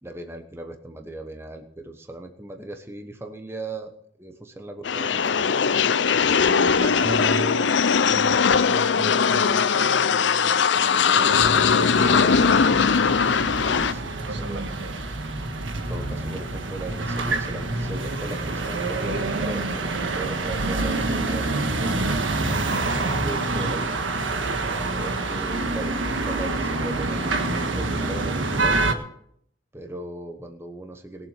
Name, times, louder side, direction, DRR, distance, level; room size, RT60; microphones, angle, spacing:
voice 1, 0.0-5.5 6.3-7.6 11.0-11.9 13.6-14.6 15.7-21.9 22.9-23.9 25.0-28.8 29.7-31.3, right 2 dB, 15° right, 5 dB, 1.1 m, -38 dB
sound 1, 4.8-13.9, left 6 dB, 70° left, 0.6 m, -20 dB
voice 2, 6.4-7.7 8.1-13.0 14.2-14.9 23.5-23.8, right 2 dB, 70° right, 7 dB, 1.6 m, -35 dB
sound 2, 11.3-28.9, right 2 dB, 85° right, 1.6 m, -27 dB
20.5 x 7.3 x 6.7 m, 0.68 s
head